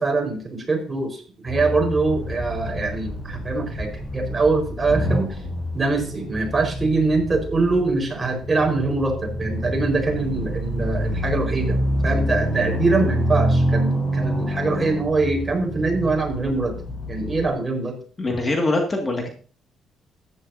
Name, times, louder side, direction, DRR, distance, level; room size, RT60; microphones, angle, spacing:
voice 1, 0.0-5.4 5.7-11.8 12.0-16.7 17.1-18.0, right 3 dB, 25° right, 2 dB, 4.4 m, -23 dB
sound 1, 1.5-17.5, equal, 45° left, 5.8 m, -27 dB
voice 2, 18.2-19.3, left 2 dB, 30° left, 2 dB, 2.0 m, -23 dB
14.5 x 10.5 x 2.7 m, 0.42 s
cardioid pair, 90°, 0 cm